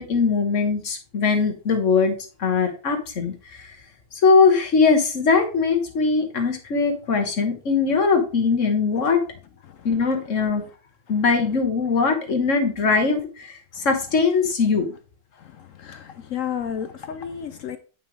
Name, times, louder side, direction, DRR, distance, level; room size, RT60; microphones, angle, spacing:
voice 1, 0.0-3.8 4.1-9.2 9.9-10.6 11.1-14.9, left 4 dB, 45° left, 3 dB, 1.6 m, -21 dB
voice 2, 15.6-17.8, left 8 dB, 65° left, 10 dB, 0.8 m, -31 dB
9.3 x 5.6 x 3.2 m, 0.36 s
omnidirectional pair, 1.9 m